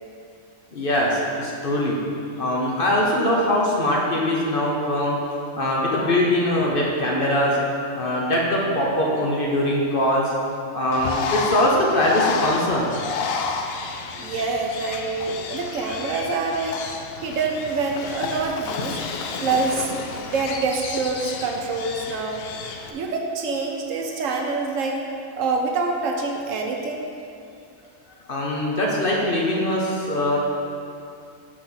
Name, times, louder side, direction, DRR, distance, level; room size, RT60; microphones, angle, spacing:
voice 1, 0.7-2.0 2.4-5.2 5.5-7.6 7.9-10.3 10.7-12.9 28.3-30.4, left 1 dB, 45° left, -3 dB, 0.9 m, -22 dB
Bird, 10.9-22.9, left 5 dB, 65° left, 0.6 m, -31 dB
voice 2, 14.1-16.8 17.2-19.0 19.4-22.5 22.9-25.0 25.3-27.1, right 3 dB, 70° right, 1 dB, 1.1 m, -26 dB
6.0 x 4.1 x 6.3 m, 2.5 s
omnidirectional pair, 1.4 m